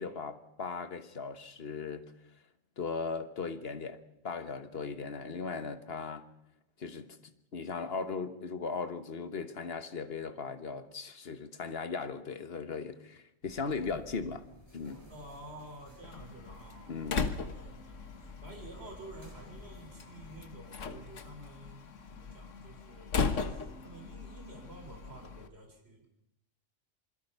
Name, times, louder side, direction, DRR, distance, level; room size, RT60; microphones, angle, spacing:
voice 1, 0.0-2.1 2.8-6.3 6.8-7.2 7.5-14.4 14.7-15.0 16.9-17.3, left 4 dB, 55° left, 11 dB, 1.5 m, -38 dB
sound 1, 13.4-20.4, left 1 dB, 20° left, 7.5 m, -55 dB
voice 2, 15.1-26.1, right 2 dB, 55° right, 3 dB, 3.8 m, -51 dB
Slam, 16.0-25.5, left 5 dB, 80° left, 1.6 m, -38 dB
26.5 x 21.0 x 5.5 m, 0.83 s
omnidirectional pair, 1.3 m